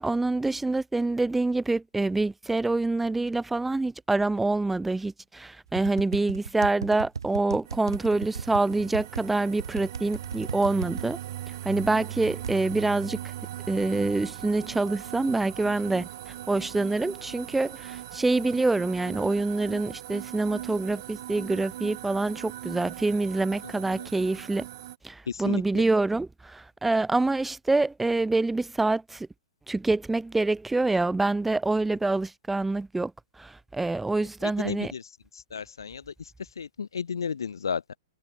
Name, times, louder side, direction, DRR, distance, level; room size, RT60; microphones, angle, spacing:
voice 1, 0.0-11.2 11.6-13.2 13.7-24.7 25.0-29.3 29.7-33.1 33.4-34.9, right 2 dB, 5° right, 1.7 m, -26 dB
sound 1, 5.7-9.3 9.6-11.1 12.2-12.5, right 6 dB, 75° right, 4.3 m, -35 dB
sound 2, 7.7-25.0, right 13 dB, 55° right, 2.0 m, -40 dB
voice 2, 25.3-25.8 34.4-35.0 35.5-36.0 36.6-38.0, left 6 dB, 75° left, 1.6 m, -33 dB
figure-of-eight pair, 115°, 2 cm